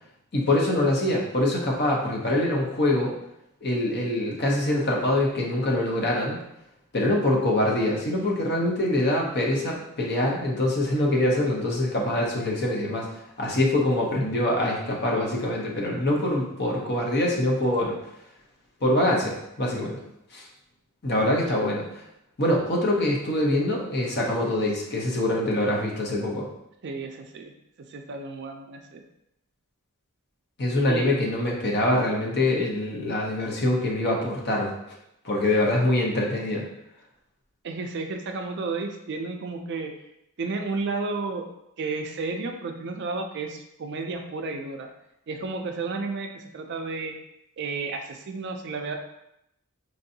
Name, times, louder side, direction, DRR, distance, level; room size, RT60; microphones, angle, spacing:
voice 1, 0.3-3.1 3.6-6.4 6.9-13.1 13.4-18.0 18.8-20.0 20.3-20.5 21.0-22.0 22.4-26.5 30.6-34.7 35.2-36.6, left 1 dB, 45° left, -2 dB, 0.8 m, -24 dB
voice 2, 26.8-27.5 27.9-29.0 30.9-31.2 37.6-39.9 40.4-41.5 41.8-44.9 45.3-47.1 47.6-49.0, right 3 dB, 50° right, 4 dB, 0.4 m, -32 dB
4.5 x 2.6 x 2.7 m, 0.82 s
head